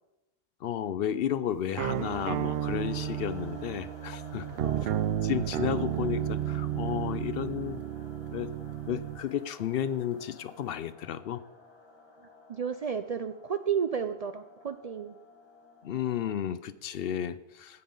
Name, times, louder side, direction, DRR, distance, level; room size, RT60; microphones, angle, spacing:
voice 1, 0.6-4.5 5.2-7.8 8.3-8.5 8.9-11.4 15.8-17.8, left 9 dB, 70° left, 14 dB, 0.8 m, -32 dB
sound 1, 1.8-9.2, right 11 dB, 75° right, 0.8 m, -32 dB
sound 2, 1.9-16.7, left 2 dB, 25° left, 1.8 m, -53 dB
voice 2, 4.6-5.0 12.5-15.2, right 7 dB, 55° right, 9 dB, 0.4 m, -32 dB
16.0 x 5.6 x 5.4 m, 0.97 s
omnidirectional pair, 1.1 m